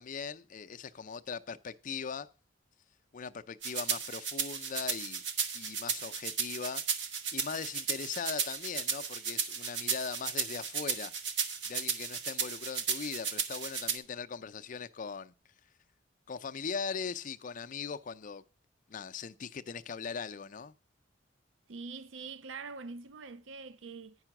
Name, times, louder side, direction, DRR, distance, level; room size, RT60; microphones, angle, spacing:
voice 1, 0.0-2.3 3.1-5.2 5.5-6.8 7.3-11.1 11.7-15.3 16.3-18.4 18.9-20.7, left 5 dB, 45° left, 0.5 m, -40 dB
sound 1, 3.6-14.0, right 6 dB, 70° right, 1.2 m, -34 dB
voice 2, 21.7-24.2, right 4 dB, 90° right, 0.5 m, -44 dB
9.9 x 5.5 x 5.9 m
head